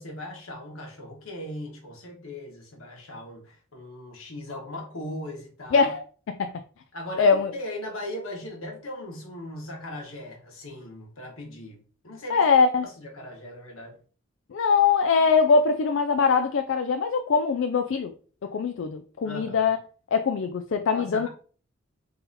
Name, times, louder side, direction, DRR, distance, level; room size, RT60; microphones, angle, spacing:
voice 1, 0.0-5.9 6.9-12.5 12.8-14.0 19.2-19.7 20.9-21.3, left 1 dB, 80° left, 1.4 m, -38 dB
voice 2, 5.7-6.0 6.4-6.5 7.2-7.5 12.3-12.9 14.5-18.1 18.4-19.8 20.1-21.3, left 5 dB, 60° left, 0.3 m, -22 dB
3.9 x 2.8 x 4.0 m
head